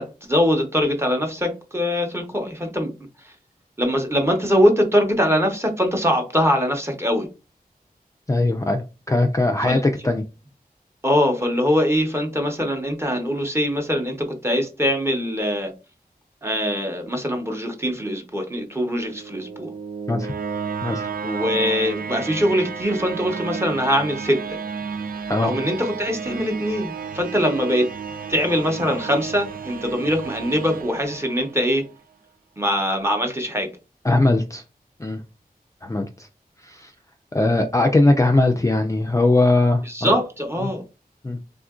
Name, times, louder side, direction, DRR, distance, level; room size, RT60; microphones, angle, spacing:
voice 1, 0.0-2.9 3.2-3.3 3.8-7.3 9.6-9.8 11.0-15.7 16.4-19.7 21.2-24.6 25.4-27.9 28.3-31.9 32.6-33.7 39.8-40.8, equal, 15° right, 0.8 m, -22 dB
voice 2, 8.3-10.2 20.1-20.3 20.8-21.1 25.3-25.5 34.0-34.6 35.0-35.2 35.8-36.3 36.6-36.9 37.3-40.1 41.2-41.4, left 2 dB, 20° left, 0.3 m, -20 dB
sound 1, 18.9-31.9, right 6 dB, 65° right, 0.4 m, -32 dB
3.5 x 2.4 x 2.3 m
wide cardioid pair, 80°, 16 cm